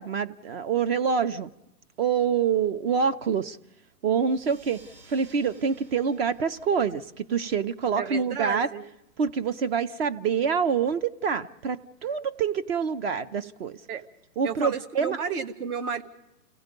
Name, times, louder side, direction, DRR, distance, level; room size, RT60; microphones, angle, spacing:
voice 1, 0.0-1.5 2.0-3.6 4.0-8.7 9.2-13.8 14.4-15.2, right 6 dB, 40° right, 12 dB, 0.7 m, -26 dB
sound 1, 4.3-9.4, right 2 dB, 80° right, 4.3 m, -57 dB
voice 2, 8.0-8.8 13.9-14.0 14.4-16.0, right 5 dB, 65° right, 8 dB, 2.1 m, -32 dB
30.0 x 16.5 x 5.3 m, 0.94 s
hypercardioid pair, 140°, 49 cm